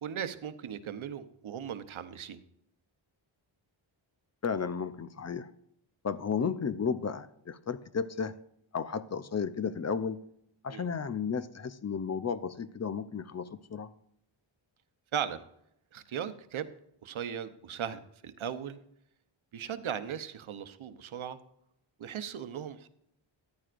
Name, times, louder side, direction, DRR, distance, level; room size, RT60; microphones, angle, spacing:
voice 1, 0.0-2.4 10.7-10.9 15.1-15.4 15.9-16.7 17.0-18.8 19.5-21.4 22.0-22.9, right 8 dB, 75° right, 10 dB, 0.9 m, -37 dB
voice 2, 4.4-5.5 6.0-8.3 8.7-10.2 10.6-13.9, left 6 dB, 35° left, 14 dB, 0.5 m, -33 dB
14.0 x 10.5 x 2.5 m, 0.74 s
wide cardioid pair, 140°, 48 cm